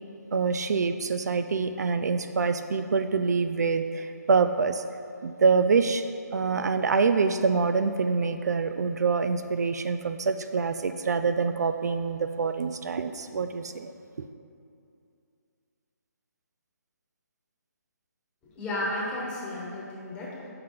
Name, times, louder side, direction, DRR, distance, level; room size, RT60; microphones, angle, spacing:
voice 1, 0.3-4.8 5.2-6.1 6.3-13.9, right 5 dB, 70° right, 9 dB, 0.4 m, -25 dB
voice 2, 18.6-20.5, left 1 dB, 10° left, -6 dB, 1.2 m, -33 dB
5.7 x 5.6 x 5.1 m, 2.5 s
hypercardioid pair, 160°, 9 cm